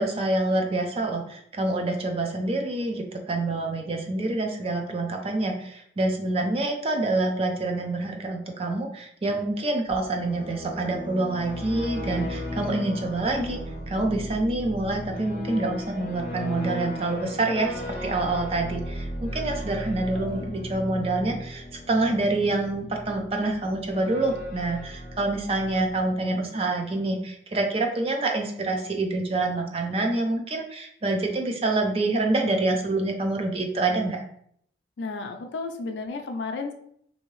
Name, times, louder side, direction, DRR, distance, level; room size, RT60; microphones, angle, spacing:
voice 1, 0.0-13.6 13.9-34.2, right 2 dB, 30° right, 3 dB, 0.4 m, -27 dB
sound 1, 9.9-26.5, left 1 dB, 45° left, 0.7 m, -36 dB
voice 2, 20.1-20.5 35.0-36.7, left 3 dB, 75° left, 5 dB, 0.4 m, -33 dB
2.8 x 2.7 x 3.0 m, 0.67 s
head